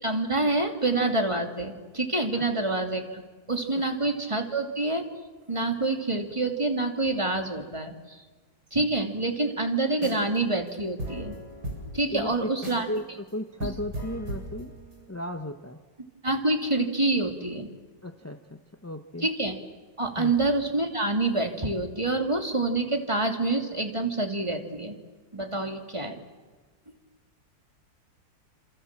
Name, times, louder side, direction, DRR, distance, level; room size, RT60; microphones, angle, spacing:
voice 1, 0.0-3.2 3.5-5.1 5.5-8.2 8.7-11.4 11.9-12.9 13.6-13.7 16.2-17.7 19.2-19.6 20.0-25.0 25.3-26.2, right 2 dB, 15° right, 4 dB, 2.7 m, -27 dB
sound 1, 9.9-10.4 10.7-10.8 11.0-13.0 13.3-13.4 13.6-15.0, equal, 60° right, 8.9 m, -37 dB
voice 2, 13.3-14.7 15.1-15.8 18.0-19.3 20.2-20.3, left 1 dB, 15° left, 7 dB, 0.6 m, -35 dB
28.0 x 27.0 x 7.5 m, 1.4 s
omnidirectional pair, 2.0 m